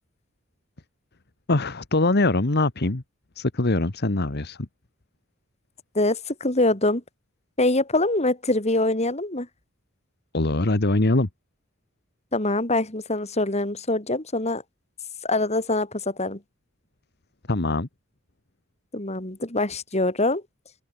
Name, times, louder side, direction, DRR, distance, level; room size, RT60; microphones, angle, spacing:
voice 1, 1.5-3.0 3.3-4.7 10.3-11.3 17.5-17.9, left 2 dB, 50° left, 1.4 m, -22 dB
voice 2, 6.0-7.0 7.6-9.5 12.3-14.6 15.2-16.4 18.9-20.4, left 2 dB, 30° left, 3.6 m, -24 dB
head